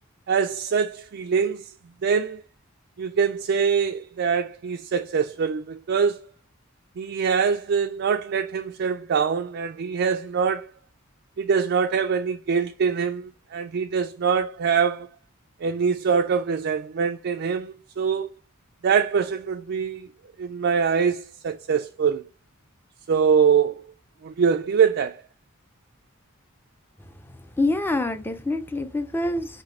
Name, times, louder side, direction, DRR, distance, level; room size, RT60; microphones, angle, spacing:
voice 1, 0.3-1.7 2.0-2.4 3.0-6.2 7.0-10.6 11.4-15.1 15.6-18.3 18.8-20.1 20.4-22.2 23.1-23.8 24.2-25.2, right 6 dB, 50° right, 0.4 m, -23 dB
voice 2, 27.2-29.6, left 2 dB, 10° left, 0.5 m, -26 dB
4.0 x 2.7 x 4.3 m
head